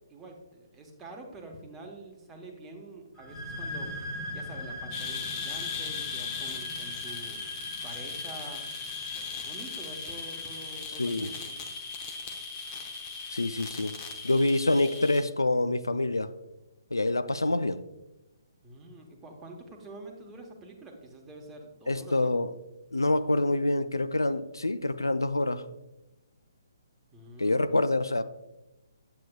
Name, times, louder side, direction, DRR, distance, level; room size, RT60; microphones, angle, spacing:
voice 1, 0.1-3.9 4.3-7.4 7.8-8.6 9.1-11.6 18.6-22.3 27.1-27.7, right 2 dB, 15° right, 1 dB, 1.0 m, -46 dB
sound 1, 3.1-10.6, left 1 dB, 10° left, 1.2 m, -41 dB
sound 2, 4.9-15.2, left 5 dB, 30° left, 0.8 m, -38 dB
voice 2, 11.0-11.3 13.3-14.0 14.2-16.3 16.9-17.8 21.9-22.5 22.9-25.6 27.4-28.2, left 2 dB, 85° left, 13 dB, 0.3 m, -26 dB
8.4 x 7.6 x 2.3 m, 0.98 s
figure-of-eight pair, 135°, 2 cm